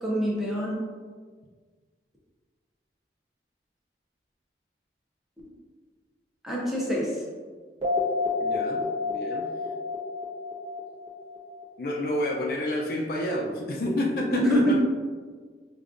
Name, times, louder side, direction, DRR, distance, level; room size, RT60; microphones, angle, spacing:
voice 1, 0.0-0.8 6.4-7.1 14.3-14.7, equal, ahead, -5 dB, 0.6 m, -25 dB
sound 1, 7.8-11.8, left 3 dB, 35° right, 0.9 m, -29 dB
voice 2, 8.4-9.5 11.8-14.7, left 1 dB, 55° left, -1 dB, 0.4 m, -29 dB
5.0 x 2.4 x 2.4 m, 1.5 s
head